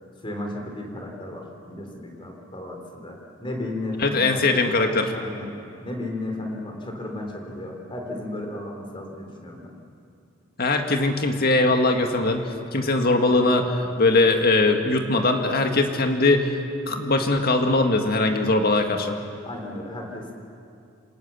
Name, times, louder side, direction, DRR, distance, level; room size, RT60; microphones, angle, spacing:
voice 1, 0.2-4.5 5.1-5.5 5.8-9.8 19.4-20.3, left 1 dB, 25° left, 2 dB, 3.7 m, -34 dB
voice 2, 4.0-5.1 10.6-16.5 16.9-19.1, left 2 dB, 50° left, 4 dB, 2.0 m, -21 dB
27.0 x 18.5 x 7.1 m, 2.4 s
head